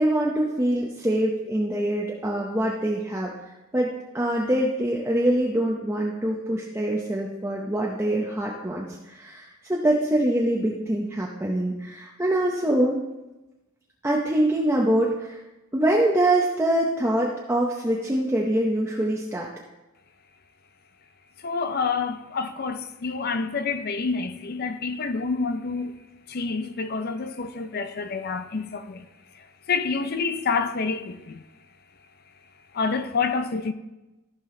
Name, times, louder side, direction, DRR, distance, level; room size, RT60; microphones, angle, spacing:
voice 1, 0.0-3.3 3.7-13.0 14.0-15.4 15.7-19.5, right 1 dB, 10° right, 0.7 m, -24 dB
voice 2, 21.4-26.0 26.3-29.1 29.7-31.4 32.7-33.7, left 4 dB, 45° left, 0.5 m, -28 dB
14.5 x 6.2 x 3.8 m
head